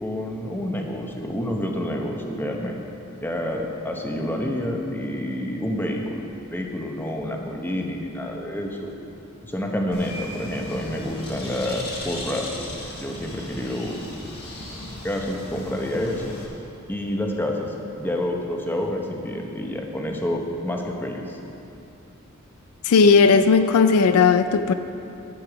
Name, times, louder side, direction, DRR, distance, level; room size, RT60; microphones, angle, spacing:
voice 1, 0.0-2.8 3.2-8.9 9.4-12.6 13.0-14.1 14.6-16.4 16.9-21.4, left 1 dB, 10° left, 1 dB, 0.8 m, -28 dB
Bird, 9.9-16.5, left 1 dB, 45° left, 1.6 m, -37 dB
voice 2, 22.8-24.7, left 5 dB, 85° left, 11 dB, 0.4 m, -16 dB
10.5 x 8.0 x 4.9 m, 2.8 s
head